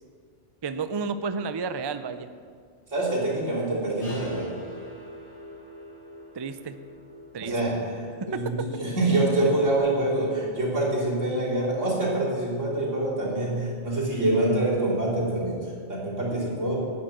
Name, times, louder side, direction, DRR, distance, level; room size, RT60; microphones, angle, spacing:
voice 1, 0.6-2.3 6.4-6.8 7.3-7.5 8.3-8.4, right 5 dB, 40° right, 11 dB, 0.3 m, -31 dB
voice 2, 2.9-4.5 7.4-16.8, right 1 dB, 90° right, -5 dB, 3.8 m, -26 dB
sound 1, 4.0-9.8, equal, 65° left, 4.0 m, -45 dB
11.0 x 9.4 x 7.8 m, 2.1 s
omnidirectional pair, 1.2 m